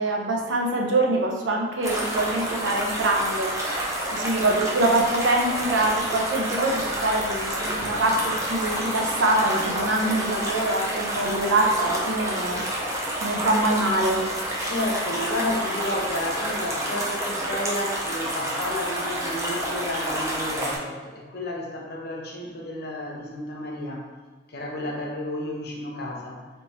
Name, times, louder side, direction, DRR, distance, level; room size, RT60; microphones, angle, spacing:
voice 1, 0.0-3.5 4.1-12.6 13.2-14.2, right 2 dB, 85° right, 0 dB, 0.8 m, -24 dB
sound 1, 1.8-20.8, right 1 dB, 15° right, 0.6 m, -29 dB
voice 2, 14.6-24.1 24.5-26.5, left 1 dB, 55° left, -1 dB, 0.8 m, -31 dB
3.4 x 3.0 x 4.1 m, 1.4 s
head